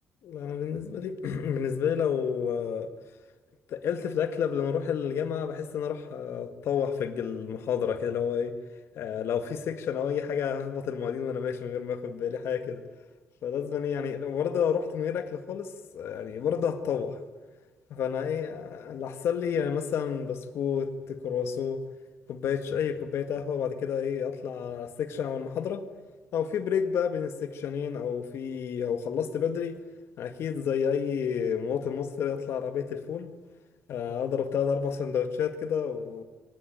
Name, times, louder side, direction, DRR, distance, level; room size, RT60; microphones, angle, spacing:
voice 1, 0.2-2.9 3.7-8.6 9.0-12.8 13.4-17.2 17.9-21.8 22.3-25.8 26.3-29.8 30.2-33.3 33.9-36.2, left 7 dB, 75° left, 1.9 m, -30 dB
23.5 x 17.5 x 9.0 m
cardioid pair, 95°, 4 cm